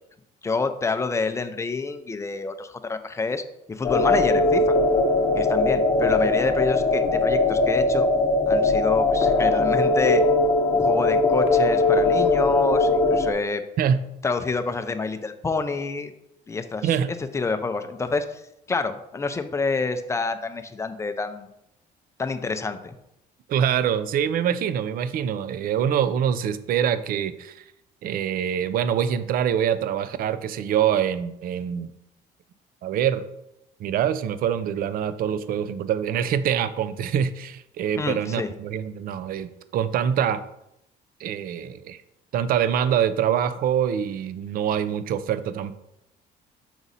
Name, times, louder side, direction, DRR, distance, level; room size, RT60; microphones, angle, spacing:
voice 1, 0.4-3.4 3.7-4.8 5.3-8.1 8.5-10.2 10.7-13.6 14.2-16.1 16.5-16.9 17.3-18.4 18.7-21.5 22.2-22.9 38.0-38.5, left 4 dB, 15° left, 8 dB, 0.5 m, -27 dB
sound 1, 3.8-13.3, left 2 dB, 35° left, 0.9 m, -20 dB
voice 2, 23.5-27.6 28.0-31.9 32.8-33.2 33.8-40.4 41.2-42.0 42.3-45.7, right 9 dB, 60° right, 12 dB, 0.5 m, -25 dB
6.1 x 3.9 x 4.1 m, 0.82 s
cardioid pair, 110°, 17 cm